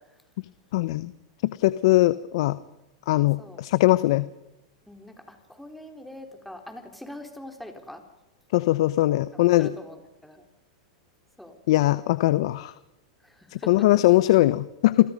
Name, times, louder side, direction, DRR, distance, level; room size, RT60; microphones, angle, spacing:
voice 1, 0.7-1.1 1.4-2.6 3.1-4.3 8.5-9.7 11.7-12.7 13.5-15.1, left 17 dB, 65° left, 16 dB, 0.9 m, -21 dB
voice 2, 4.9-8.0 9.6-10.4 11.4-11.6 13.2-13.9, left 1 dB, ahead, 4 dB, 4.2 m, -43 dB
28.5 x 22.0 x 5.4 m, 0.97 s
hypercardioid pair, 115°, 3 cm